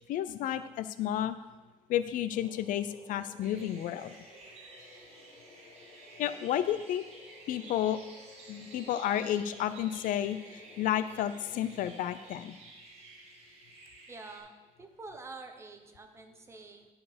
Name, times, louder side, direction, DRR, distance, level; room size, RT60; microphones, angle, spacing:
voice 1, 0.1-1.4 1.9-4.1 6.2-7.0 7.5-8.0 8.5-12.6, left 11 dB, 80° left, 13 dB, 0.5 m, -31 dB
sound 1, 2.3-12.3, left 2 dB, 60° left, 2.2 m, -56 dB
sound 2, 3.4-14.4, right 2 dB, 50° right, 1.6 m, -52 dB
voice 2, 14.1-14.5 14.8-16.9, right 3 dB, 20° right, 5 dB, 0.8 m, -47 dB
10.5 x 4.7 x 5.1 m, 1.2 s
cardioid pair, 165°, 14 cm